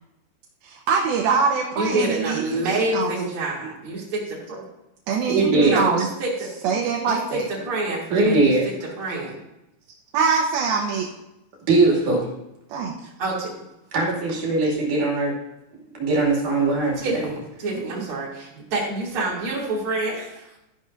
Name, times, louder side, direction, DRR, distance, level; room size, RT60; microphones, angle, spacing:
voice 1, 0.6-3.2 3.6-3.7 5.1-6.1 6.6-7.5 10.1-11.1 12.7-12.9 17.7-18.1, right 5 dB, 80° right, -1 dB, 2.7 m, -24 dB
voice 2, 1.8-4.6 5.7-6.7 7.0-9.4 13.2-13.5 17.0-20.6, right 2 dB, 35° right, -5 dB, 3.3 m, -27 dB
voice 3, 5.3-5.8 8.1-8.7 11.7-12.3 13.9-15.3 16.0-17.2, right 3 dB, 60° right, -3 dB, 3.8 m, -20 dB
12.5 x 10.5 x 2.6 m, 0.90 s
omnidirectional pair, 4.4 m